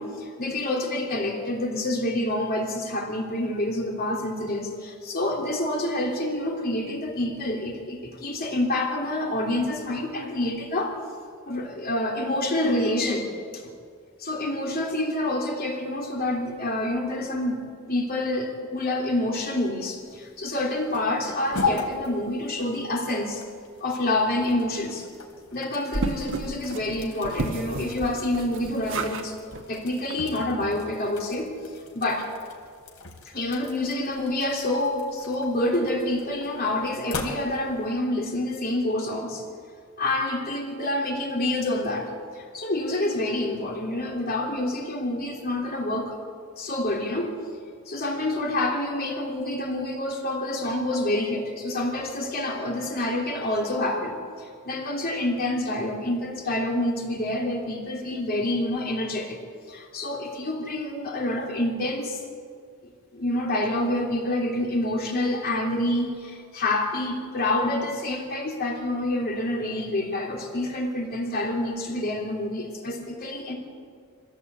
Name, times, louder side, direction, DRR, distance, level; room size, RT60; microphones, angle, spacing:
voice 1, 0.0-11.0 11.5-13.3 13.5-13.7 14.2-17.6 17.9-23.4 23.8-25.1 25.5-29.4 29.6-32.3 33.2-39.4 40.0-46.2 46.6-47.3 47.9-59.4 59.7-62.2 63.1-73.5, left 1 dB, 45° left, 0 dB, 3.3 m, -27 dB
sound 1, 19.9-37.9, left 3 dB, 75° left, 3.3 m, -38 dB
sound 2, 25.9-29.3 29.5-29.7 30.1-30.2 30.4-30.5, right 2 dB, 60° right, 1.3 m, -32 dB
25.0 x 16.0 x 8.3 m, 2.2 s
head